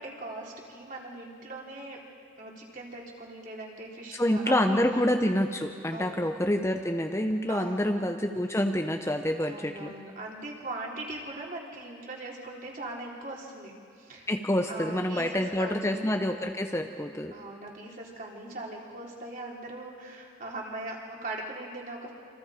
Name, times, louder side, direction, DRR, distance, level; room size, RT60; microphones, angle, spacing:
voice 1, 0.0-2.0 2.4-4.9 5.9-6.2 7.5-7.9 9.4-13.7 14.0-14.3 14.7-16.0 17.3-22.1, right 2 dB, 45° right, -2 dB, 3.6 m, -40 dB
voice 2, 4.1-9.9 14.3-17.3, left 1 dB, 15° left, 4 dB, 0.8 m, -27 dB
27.5 x 26.0 x 5.1 m, 2.3 s
head